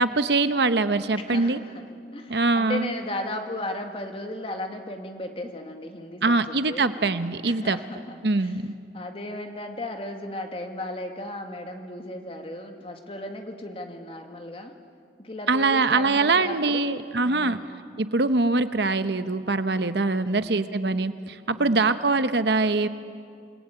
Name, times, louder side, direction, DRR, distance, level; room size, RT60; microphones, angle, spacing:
voice 1, 0.0-1.6 2.3-2.9 6.2-7.8 8.2-8.7 15.5-17.6 18.0-22.9, right 3 dB, 70° right, 11 dB, 0.9 m, -23 dB
voice 2, 1.3-1.9 2.1-6.9 7.4-8.6 8.9-14.7 15.2-17.7 20.2-20.7 21.5-21.9, left 1 dB, 30° left, 4 dB, 2.0 m, -36 dB
28.5 x 20.0 x 8.9 m, 2.3 s
head